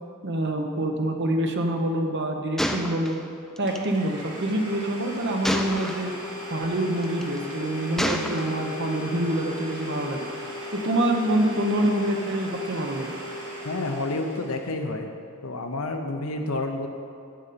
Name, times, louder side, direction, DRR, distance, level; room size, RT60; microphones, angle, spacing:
voice 1, 0.2-3.2 3.6-6.1 6.5-10.3 10.7-13.1, right 1 dB, 50° right, 3 dB, 0.9 m, -26 dB
Gunshot gunfire, 2.6-3.9 5.4-6.2 7.0-7.4 8.0-8.8, equal, ahead, 0.4 m, -29 dB
Domestic sounds home sounds, 3.2-3.3 3.7-14.7, left 1 dB, 80° right, 2.5 m, -37 dB
voice 2, 13.6-15.1 15.4-16.9, left 2 dB, 70° left, 5 dB, 0.8 m, -29 dB
10.5 x 7.9 x 4.2 m, 2.4 s
head